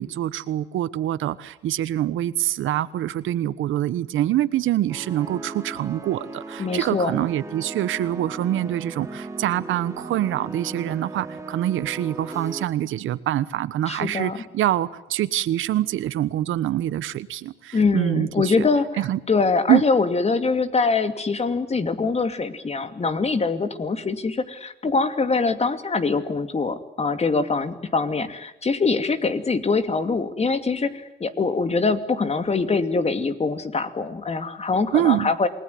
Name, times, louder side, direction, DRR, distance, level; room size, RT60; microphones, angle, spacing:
voice 1, 0.0-18.7 19.0-19.2 19.7-19.8 34.9-35.3, right 13 dB, 80° right, 16 dB, 1.2 m, -25 dB
sound 1, 4.9-12.7, right 3 dB, 15° right, 3.0 m, -37 dB
voice 2, 6.6-7.2 13.9-14.4 17.7-18.9 19.3-35.5, left 4 dB, 30° left, 9 dB, 2.5 m, -23 dB
28.0 x 20.5 x 9.5 m, 0.91 s
cardioid pair, 90°, 20 cm